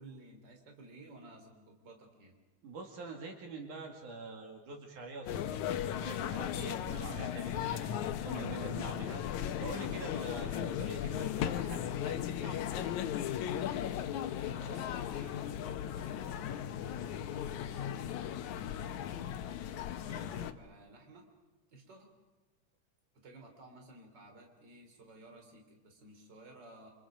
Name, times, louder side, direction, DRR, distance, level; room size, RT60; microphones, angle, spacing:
voice 1, 0.0-2.4 10.5-10.8 14.3-19.3 19.9-21.3 21.7-22.1 23.1-26.9, right 2 dB, 35° right, 2 dB, 3.9 m, -55 dB
voice 2, 2.6-8.0 8.2-12.6, right 3 dB, 70° right, 1 dB, 4.0 m, -45 dB
sound 1, 5.3-20.5, left 10 dB, 70° left, 2.1 m, -36 dB
29.0 x 27.5 x 5.1 m, 1.3 s
omnidirectional pair, 3.7 m